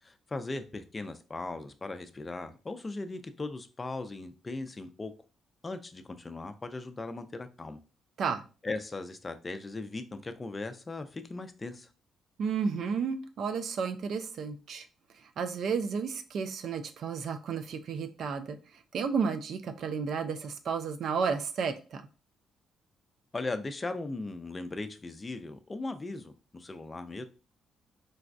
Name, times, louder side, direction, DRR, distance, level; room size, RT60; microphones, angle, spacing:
voice 1, 0.0-5.1 5.6-7.8 8.6-11.9 23.3-27.2, left 3 dB, 25° left, 8 dB, 0.4 m, -38 dB
voice 2, 12.4-14.9 15.2-18.6 18.9-22.0, right 6 dB, 65° right, 9 dB, 0.4 m, -32 dB
4.0 x 2.2 x 2.5 m, 0.34 s
cardioid pair, 90°, 0 cm